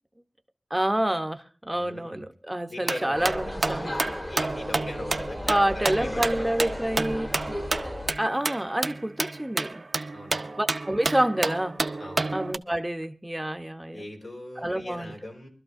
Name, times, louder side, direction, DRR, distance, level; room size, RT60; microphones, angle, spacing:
voice 1, 0.7-3.9 5.5-7.6 8.2-9.8 10.6-11.8 12.3-14.1 14.6-15.1, right 1 dB, 10° right, 0.7 m, -28 dB
voice 2, 1.7-2.3 2.7-6.9 10.1-10.5 12.0-12.3 13.9-15.5, left 1 dB, 75° left, 3.8 m, -40 dB
sound 1, 2.8-12.6, right 3 dB, 50° right, 0.5 m, -30 dB
sound 2, 3.1-8.1, left 1 dB, 30° left, 1.5 m, -35 dB
24.0 x 12.5 x 2.6 m
wide cardioid pair, 75°, 0 cm